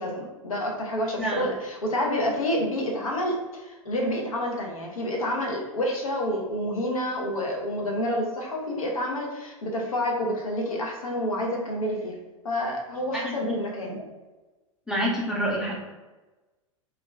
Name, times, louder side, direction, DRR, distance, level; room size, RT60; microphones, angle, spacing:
voice 1, 0.0-12.2 12.4-14.0, left 1 dB, 85° left, -1 dB, 0.6 m, -28 dB
voice 2, 13.1-13.6 13.8-14.0 14.9-15.7, equal, 5° right, -4 dB, 0.6 m, -28 dB
2.4 x 2.1 x 3.2 m, 1.2 s
hypercardioid pair, 95°, 17 cm